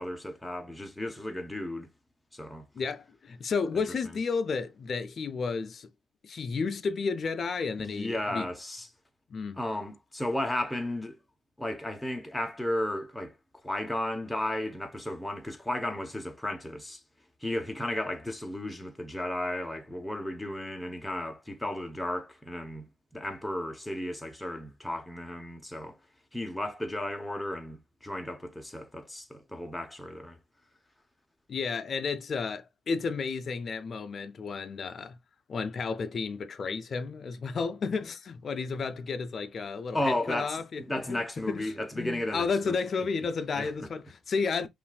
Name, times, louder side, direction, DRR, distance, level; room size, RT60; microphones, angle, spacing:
voice 1, 0.0-1.9 2.3-2.7 4.0-4.2 7.8-8.9 9.6-11.2 11.6-13.3 13.6-17.0 17.4-26.0 26.3-30.4 39.9-42.8 43.5-43.9, left 1 dB, 5° left, 0.9 m, -34 dB
voice 2, 2.7-5.9 6.2-8.5 9.3-9.6 31.5-35.2 35.5-44.7, left 5 dB, 50° left, 0.5 m, -32 dB
5.6 x 2.5 x 2.3 m
cardioid pair, 90°, 0 cm